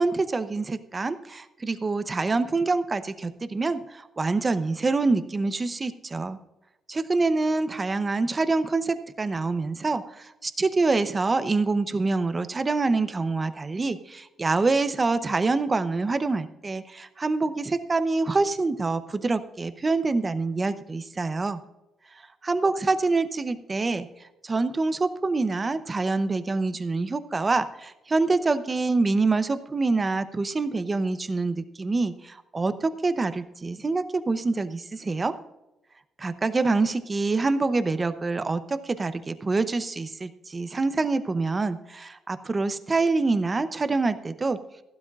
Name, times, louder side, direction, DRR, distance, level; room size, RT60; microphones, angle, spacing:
voice 1, 0.0-6.4 6.9-21.6 22.1-35.3 36.2-44.6, right 3 dB, 30° right, 11 dB, 0.7 m, -26 dB
15.0 x 12.0 x 2.5 m, 0.96 s
cardioid pair, 90°, 0 cm